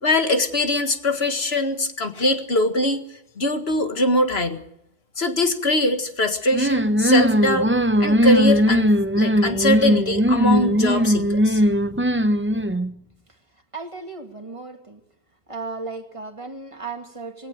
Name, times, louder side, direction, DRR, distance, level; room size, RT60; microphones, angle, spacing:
voice 1, 0.0-3.0 3.4-4.6 5.2-7.7 8.0-8.9 9.2-11.6, left 1 dB, 70° left, 7 dB, 2.0 m, -22 dB
sound 1, 6.5-12.9, equal, 15° right, 0.7 m, -19 dB
voice 2, 13.7-15.0 15.5-17.5, right 3 dB, 30° right, 5 dB, 2.3 m, -35 dB
19.5 x 17.5 x 9.1 m, 0.80 s
omnidirectional pair, 1.1 m